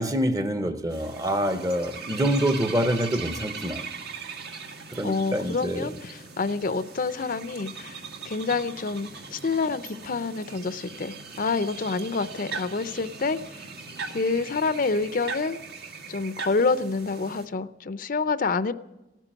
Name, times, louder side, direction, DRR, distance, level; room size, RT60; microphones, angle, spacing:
voice 1, 0.0-3.9 4.9-5.9, equal, 20° right, 0.9 m, -26 dB
sound 1, 0.9-17.5, right 5 dB, 65° right, 1.7 m, -40 dB
voice 2, 5.0-13.7 14.1-15.6 16.1-18.7, left 4 dB, 50° left, 0.6 m, -28 dB
17.0 x 9.1 x 9.1 m
head